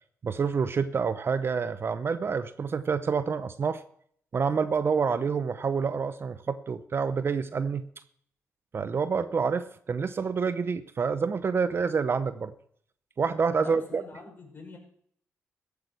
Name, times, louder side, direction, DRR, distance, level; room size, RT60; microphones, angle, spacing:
voice 1, 0.2-3.8 4.3-7.9 8.7-12.5 13.2-14.0, right 5 dB, 45° right, 13 dB, 0.7 m, -28 dB
voice 2, 13.6-14.8, left 3 dB, 35° left, -1 dB, 6.1 m, -44 dB
14.5 x 8.3 x 6.2 m, 0.65 s
cardioid pair, 80°, 6 cm